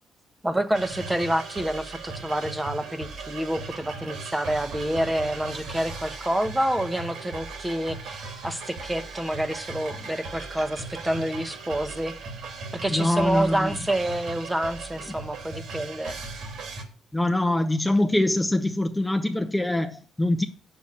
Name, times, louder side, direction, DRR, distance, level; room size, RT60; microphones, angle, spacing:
voice 1, 0.4-12.2 12.7-16.2, right 1 dB, 10° right, 1.2 m, -28 dB
sound 1, 0.7-16.8, right 4 dB, 75° right, 3.2 m, -38 dB
voice 2, 12.9-13.8 17.1-20.4, left 1 dB, 10° left, 0.9 m, -24 dB
8.1 x 6.8 x 6.9 m
cardioid pair, 90°, 0 cm